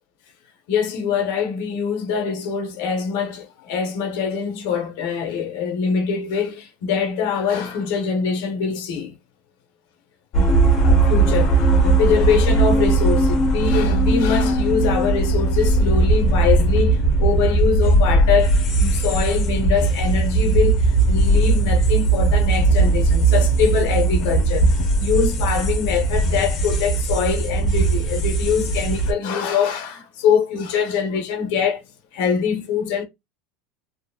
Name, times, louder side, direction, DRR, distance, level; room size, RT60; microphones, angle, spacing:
voice 1, 0.7-9.1 10.4-10.5 10.8-24.7 25.0-31.8 32.1-33.0, left 7 dB, 70° left, 0.8 m, -23 dB
sound 1, 10.3-29.1, right 3 dB, 35° left, 0.8 m, -18 dB
2.9 x 2.5 x 2.3 m
supercardioid pair, 140°, 0 cm